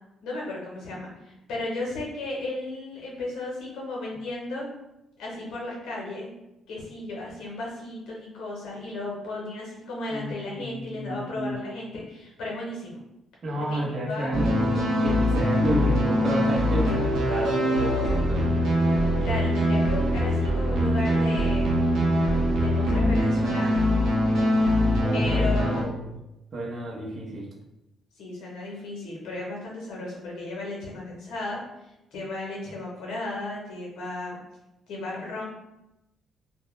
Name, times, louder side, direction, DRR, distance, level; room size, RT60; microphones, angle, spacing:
voice 1, 0.2-4.7 5.2-6.3 6.7-13.0 13.7-14.3 19.2-21.8 22.6-23.9 25.1-25.9 28.2-31.6 32.1-34.4 34.9-35.4, left 2 dB, 85° left, -3 dB, 0.7 m, -34 dB
voice 2, 10.1-11.6 13.4-18.6 25.0-26.0 26.5-27.5, right 1 dB, 50° right, -2 dB, 0.7 m, -31 dB
sound 1, 14.3-25.8, equal, 80° right, 0.6 m, -23 dB
2.2 x 2.1 x 3.0 m, 0.92 s
cardioid pair, 90°, 0 cm